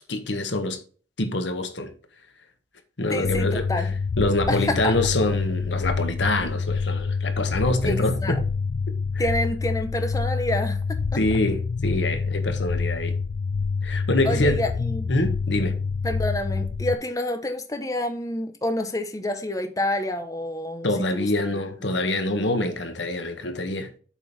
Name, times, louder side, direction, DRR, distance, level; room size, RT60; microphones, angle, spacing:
voice 1, 0.1-0.8 1.2-1.9 3.0-3.9 4.2-8.4 9.1-9.2 11.1-13.1 13.8-14.6 15.1-15.7 20.8-23.9, left 2 dB, 90° left, 1.5 m, -25 dB
voice 2, 3.1-3.9 4.5-4.9 7.8-8.4 9.2-10.8 14.2-15.1 16.0-21.3, left 1 dB, 20° left, 0.9 m, -28 dB
sound 1, 3.2-16.9, left 4 dB, 70° left, 0.4 m, -27 dB
8.1 x 5.3 x 4.2 m
head